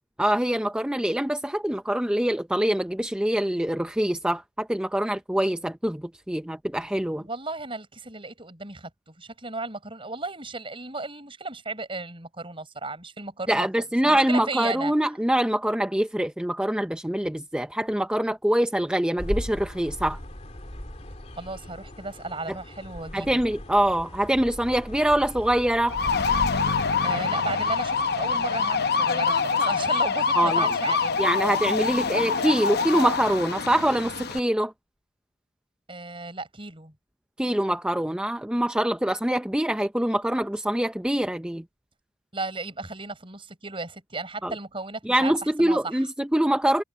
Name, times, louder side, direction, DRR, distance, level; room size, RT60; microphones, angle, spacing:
voice 1, 0.2-7.2 13.5-20.2 23.1-26.0 30.4-30.8 31.2-34.7 37.4-41.6 44.4-44.5 45.0-46.8, right 1 dB, 5° right, 0.5 m, -24 dB
voice 2, 7.2-13.7 14.0-14.9 21.4-23.4 27.0-31.1 35.9-36.9 42.3-45.3 45.6-46.0, right 3 dB, 30° right, 6.0 m, -35 dB
sound 1, 19.2-26.9, equal, 35° left, 2.7 m, -38 dB
sound 2, 25.9-34.4, left 5 dB, 55° left, 0.9 m, -25 dB
head